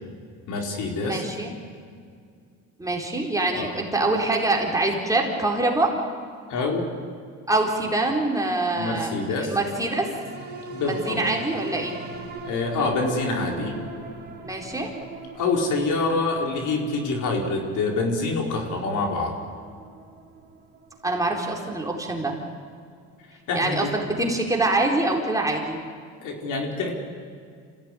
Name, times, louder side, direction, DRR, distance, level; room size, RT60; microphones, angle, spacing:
voice 1, 0.5-1.2 3.6-3.7 6.5-6.8 8.7-9.6 10.7-11.3 12.4-13.7 15.3-19.4 23.5-23.9 26.2-26.9, left 3 dB, 70° left, 1 dB, 4.7 m, -26 dB
voice 2, 1.0-1.5 2.8-5.9 7.5-10.1 10.8-12.0 14.4-14.9 21.0-22.4 23.5-25.8, right 2 dB, 10° right, -1 dB, 4.1 m, -25 dB
sound 1, 9.3-23.9 24.4-24.5, right 2 dB, 30° right, 4.1 m, -41 dB
26.5 x 16.0 x 10.0 m, 2.2 s
cardioid pair, 115°, 32 cm